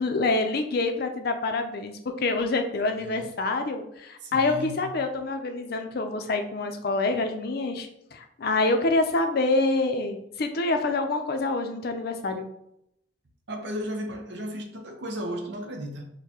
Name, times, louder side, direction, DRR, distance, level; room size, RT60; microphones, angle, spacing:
voice 1, 0.0-12.5, left 3 dB, 60° left, 0.5 m, -26 dB
voice 2, 4.2-4.8 13.5-16.1, equal, 70° right, 0.7 m, -35 dB
6.4 x 2.2 x 2.9 m
head